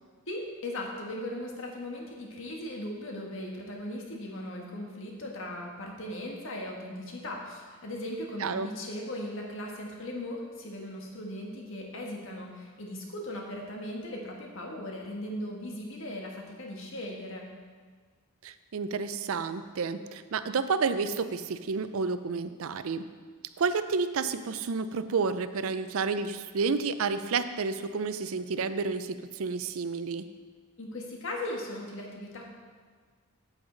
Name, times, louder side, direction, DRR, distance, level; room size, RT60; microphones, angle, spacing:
voice 1, 0.3-17.5 30.8-32.5, left 1 dB, 60° left, -1 dB, 1.5 m, -38 dB
voice 2, 18.4-23.0 23.6-30.2, right 4 dB, 70° right, 12 dB, 0.5 m, -30 dB
8.8 x 8.7 x 3.9 m, 1.5 s
head